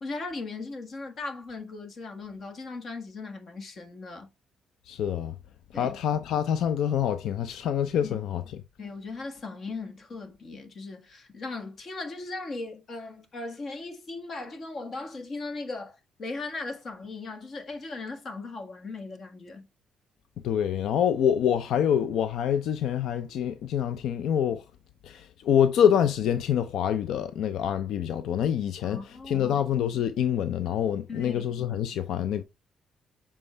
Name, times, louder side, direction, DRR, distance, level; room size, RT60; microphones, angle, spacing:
voice 1, 0.0-4.3 5.7-6.0 8.0-8.1 8.8-19.7 28.8-29.6 31.1-31.4, left 3 dB, 45° left, 1.5 m, -38 dB
voice 2, 4.9-5.3 5.7-8.4 20.4-24.6 25.0-29.0 29.3-32.4, left 9 dB, 80° left, 0.5 m, -26 dB
7.1 x 4.3 x 3.3 m
cardioid pair, 130°, 0 cm